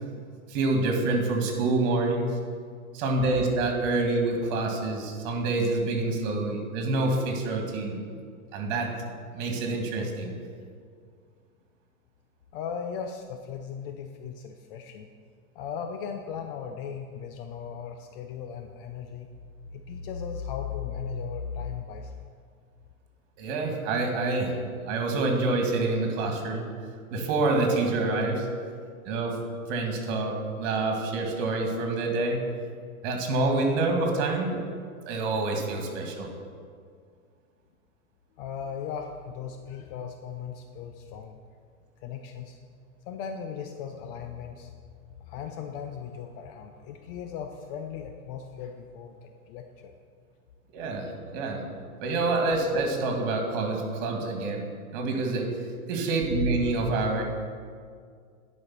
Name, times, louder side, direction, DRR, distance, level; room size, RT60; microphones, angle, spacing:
voice 1, 0.5-2.4 2.9-8.0 8.5-8.9 9.3-10.3 23.4-24.5 24.8-26.7 27.1-28.5 29.0-29.4 29.7-32.4 33.0-34.6 35.1-36.3 50.7-51.6 52.0-54.7 54.9-55.5 55.9-57.2, right 2 dB, 45° right, 2 dB, 2.2 m, -27 dB
voice 2, 12.5-15.1 15.6-19.3 19.7-22.1 38.4-41.4 42.0-42.6 43.1-44.7 45.2-49.9, left 7 dB, 40° left, 5 dB, 0.6 m, -37 dB
11.0 x 5.4 x 5.7 m, 2.1 s
hypercardioid pair, 115°, 43 cm